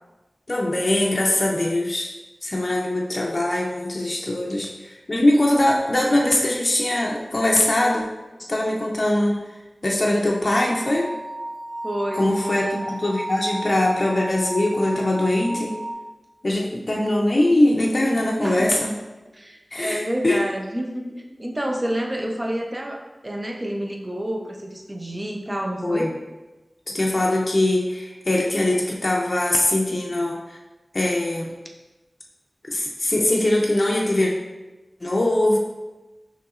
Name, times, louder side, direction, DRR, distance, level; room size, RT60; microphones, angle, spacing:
voice 1, 0.5-2.1 2.4-8.1 8.5-9.4 9.8-11.1 12.2-15.7 16.4-19.0 19.7-20.4 25.8-26.1 26.9-30.6 30.9-31.5 32.7-34.3 35.0-35.6, left 1 dB, 45° left, -2 dB, 0.5 m, -21 dB
sound 1, 10.8-15.9, right 1 dB, 65° right, 1.3 m, -34 dB
voice 2, 11.8-12.9 18.4-18.8 19.3-26.1, right 1 dB, 25° right, 1 dB, 0.6 m, -29 dB
5.6 x 3.0 x 2.4 m, 1.1 s
wide cardioid pair, 75°, 0 cm